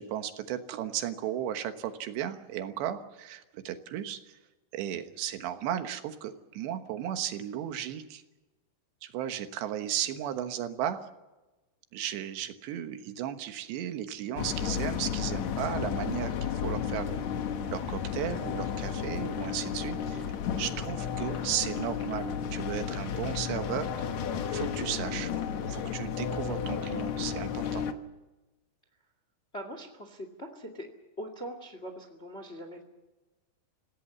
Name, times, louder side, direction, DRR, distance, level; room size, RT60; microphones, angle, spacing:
voice 1, 0.0-4.4 4.7-8.2 9.0-11.0 11.9-17.2 17.7-20.2 20.6-24.1 24.5-25.3 25.7-27.8, right 10 dB, 80° right, 8 dB, 3.4 m, -35 dB
sound 1, 14.4-27.9, left 8 dB, 75° left, 1.7 m, -33 dB
voice 2, 29.5-30.9 31.2-32.8, equal, 25° left, 6 dB, 1.4 m, -41 dB
26.5 x 17.0 x 7.3 m, 1.1 s
omnidirectional pair, 5.1 m